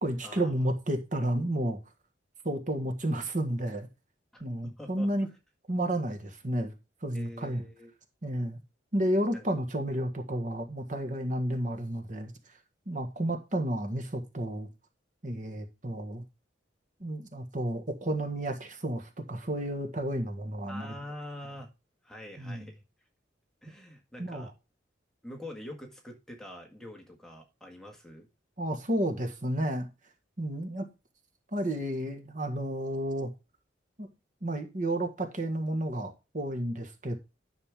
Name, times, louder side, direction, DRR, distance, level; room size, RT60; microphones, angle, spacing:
voice 1, 0.0-1.8 2.4-3.9 4.4-5.3 5.7-6.7 7.0-7.6 8.2-8.6 8.9-12.3 12.9-14.7 15.2-16.2 17.0-20.9 22.4-22.7 24.2-24.5 28.6-29.9 30.4-30.8 31.5-33.3 34.0-34.1 34.4-37.2, right 1 dB, 40° right, 1.6 m, -31 dB
voice 2, 4.3-5.3 7.1-7.9 9.3-9.4 20.7-21.7 22.0-22.8 23.6-24.5 25.2-28.3, left 1 dB, 5° left, 1.7 m, -45 dB
10.5 x 6.8 x 3.6 m
head